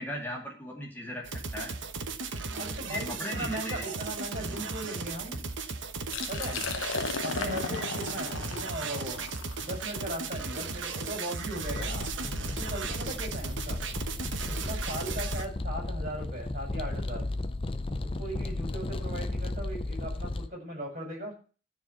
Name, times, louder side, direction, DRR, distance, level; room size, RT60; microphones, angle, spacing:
voice 1, 0.0-1.8 2.5-3.9 4.5-4.7 11.9-12.1, left 1 dB, 10° left, -1 dB, 2.4 m, -38 dB
sound 1, 1.2-15.5, right 4 dB, 70° right, 1.0 m, -36 dB
voice 2, 2.5-5.5 6.3-6.6 7.2-12.0 12.4-13.8 14.5-17.3 18.0-21.4, right 1 dB, 40° right, 0 dB, 5.7 m, -38 dB
Liquid, 6.0-11.8, left 4 dB, 80° left, 0.9 m, -37 dB
sound 2, 11.6-20.5, left 2 dB, 25° left, 0.5 m, -34 dB
12.5 x 4.9 x 7.9 m, 0.38 s
head